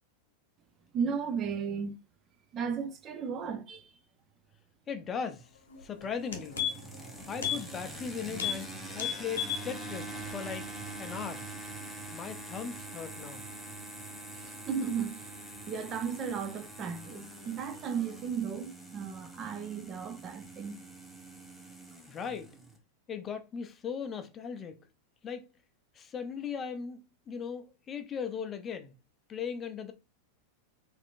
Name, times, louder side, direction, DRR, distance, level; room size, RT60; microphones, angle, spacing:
voice 1, 0.9-2.0 2.5-3.9 14.3-15.3 15.7-20.8, right 6 dB, 30° right, 0.5 m, -35 dB
voice 2, 4.9-6.6 7.3-10.7 11.0-11.5 12.1-13.4 22.1-22.5 23.1-24.8 25.2-25.5 25.9-27.0 27.3-28.9 29.3-29.9, left 6 dB, 25° left, 0.5 m, -38 dB
sound 1, 5.7-5.8 6.1-7.0 7.4-7.6 7.9-8.1 8.3-8.6 8.9-9.7 10.0-10.1, left 9 dB, 65° left, 0.8 m, -33 dB
sound 2, 6.0-22.8, right 2 dB, ahead, 0.8 m, -44 dB
4.2 x 2.6 x 2.4 m
figure-of-eight pair, 90°, 0 cm